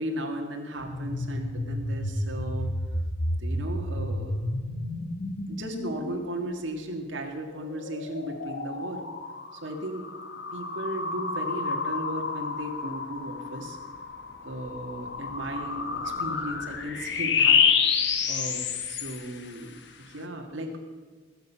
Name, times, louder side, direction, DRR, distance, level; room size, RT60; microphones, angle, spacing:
voice 1, 0.0-2.7 3.4-4.5 5.5-9.0 9.5-10.1 10.5-13.8 14.4-20.8, right 1 dB, 80° right, 2 dB, 1.7 m, -36 dB
sound 1, 0.8-6.8 7.4-19.4, left 5 dB, 65° left, 1.2 m, -29 dB
21.0 x 8.1 x 5.6 m, 1.4 s
head